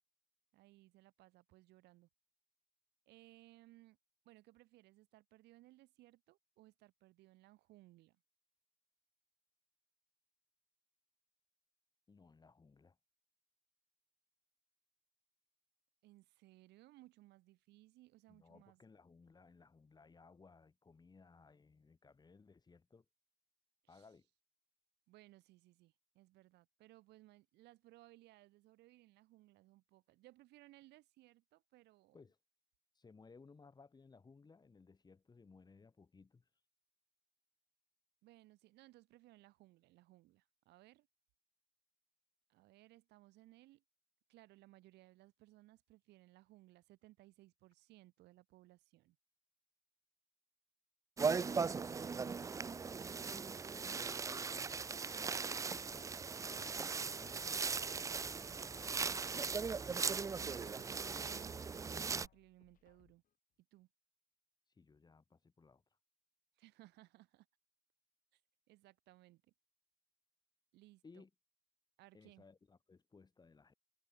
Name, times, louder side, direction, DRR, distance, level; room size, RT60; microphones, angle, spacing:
voice 1, 0.5-2.1 3.1-4.0 4.2-8.2 16.0-18.8 23.8-24.1 25.1-32.2 38.2-41.1 42.5-43.8 44.3-49.2 60.4-63.2 63.7-63.9 66.6-67.5 68.3-68.4 68.7-69.5 70.7-71.2 72.0-72.5, right 18 dB, 85° right, 5.9 m, -63 dB
voice 2, 12.1-13.0 18.3-23.0 23.9-24.3 32.1-32.4 32.9-36.5 53.2-59.0 64.7-65.8 71.0-71.3 72.1-73.7, left 4 dB, 25° left, 3.0 m, -62 dB
sound 1, 51.2-62.3, right 5 dB, 20° right, 0.4 m, -39 dB
sound 2, 55.9-57.3 57.7-59.4 59.7-61.3 61.7-63.4 63.7-63.8, left 10 dB, 55° left, 3.2 m, -74 dB
cardioid pair, 110°, 17 cm